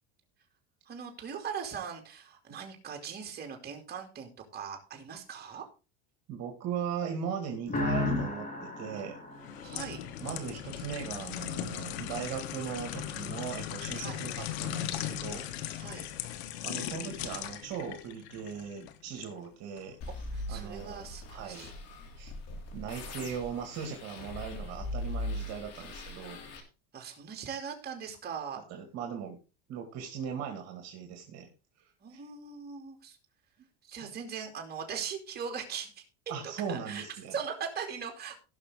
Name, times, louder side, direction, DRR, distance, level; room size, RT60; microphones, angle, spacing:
voice 1, 0.9-5.6 9.6-10.0 14.0-14.2 15.8-16.1 20.3-21.7 26.9-28.7 32.0-33.2 33.9-36.0 36.4-37.0 37.3-38.4, right 7 dB, 30° right, 2 dB, 3.1 m, -40 dB
voice 2, 6.3-9.2 10.2-15.5 15.9-16.0 16.6-20.0 20.5-21.0 21.3-21.7 22.2-22.3 22.7-26.4 28.7-29.4 29.7-31.5 31.8-32.2 34.0-34.1 36.3-37.4, right 7 dB, 55° right, 4 dB, 2.2 m, -39 dB
sound 1, 7.7-10.4, left 2 dB, 25° left, 2.8 m, -33 dB
sound 2, 9.4-19.3 19.8-20.0, left 11 dB, 90° left, 1.4 m, -38 dB
sound 3, 20.0-26.6, left 1 dB, 50° left, 3.1 m, -40 dB
17.5 x 5.9 x 3.8 m, 0.32 s
supercardioid pair, 130°, 31 cm